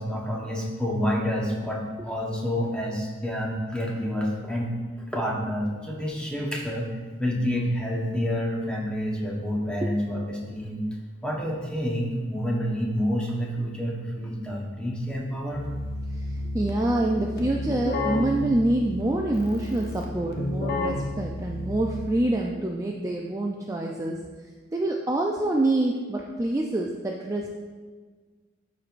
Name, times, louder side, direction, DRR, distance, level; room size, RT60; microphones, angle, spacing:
voice 1, 0.0-4.7 5.1-6.9 7.2-10.8 11.2-15.6, equal, 5° left, -2 dB, 1.0 m, -28 dB
Keyboard (musical), 15.5-22.4, left 2 dB, 50° left, 0.8 m, -32 dB
voice 2, 16.1-24.2 24.7-27.6, right 1 dB, 15° right, 0 dB, 0.4 m, -26 dB
12.0 x 4.6 x 2.5 m, 1.4 s
head